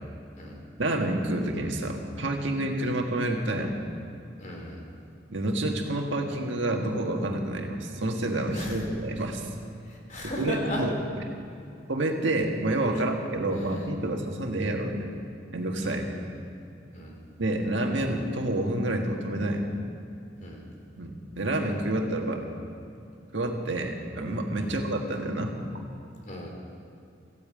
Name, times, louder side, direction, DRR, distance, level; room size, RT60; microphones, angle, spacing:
voice 1, 0.8-3.7 5.3-9.5 10.4-10.9 11.9-15.1 15.5-16.1 17.4-19.7 21.0-22.4 23.3-25.6, right 1 dB, 75° right, 2 dB, 1.6 m, -28 dB
voice 2, 4.4-4.8 8.5-8.8 9.8-10.8 12.9-13.1 15.8-16.0 16.9-17.1 20.4-20.6 24.6-24.8 26.3-26.5, equal, 40° left, -1 dB, 3.1 m, -36 dB
15.0 x 8.8 x 8.8 m, 2.6 s
head